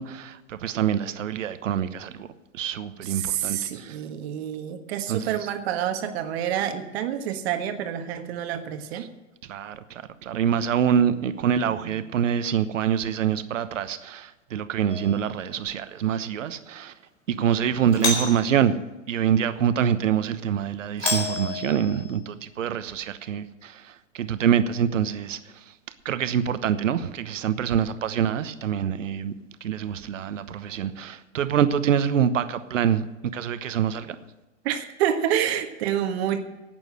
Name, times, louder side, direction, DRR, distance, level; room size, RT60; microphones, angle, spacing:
voice 1, 0.0-2.3 2.5-4.0 5.1-5.4 9.5-16.9 17.3-18.7 19.1-25.4 26.0-29.3 29.6-33.1 33.3-34.2, right 8 dB, 75° right, 1.1 m, -25 dB
voice 2, 3.0-9.1 11.7-12.0 34.6-36.4, right 10 dB, 55° right, 1.5 m, -28 dB
Doorbell, 14.9-15.4 17.9-18.5 21.0-22.2, left 2 dB, 80° left, 4.3 m, -29 dB
11.5 x 9.1 x 7.7 m
hypercardioid pair, 105°, 39 cm